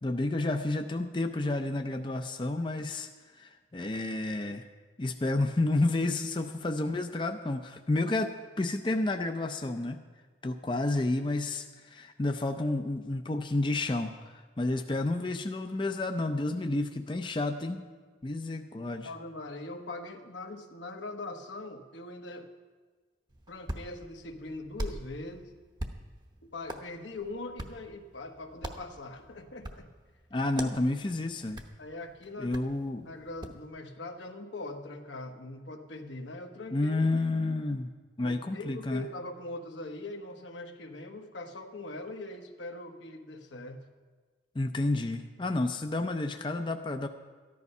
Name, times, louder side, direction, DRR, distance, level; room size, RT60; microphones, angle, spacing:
voice 1, 0.0-4.7 5.0-10.0 10.4-17.8 18.2-19.1 30.3-31.6 32.4-33.1 36.7-37.9 38.2-39.1 44.5-47.1, left 2 dB, 25° left, 6 dB, 0.5 m, -30 dB
voice 2, 19.0-22.5 23.5-25.5 26.4-29.9 31.8-32.6 33.1-37.0 38.2-43.9, left 2 dB, 85° left, 4 dB, 1.2 m, -42 dB
Hands, 23.3-33.6, right 1 dB, 25° right, 0.8 m, -44 dB
13.5 x 11.0 x 5.4 m, 1.4 s
head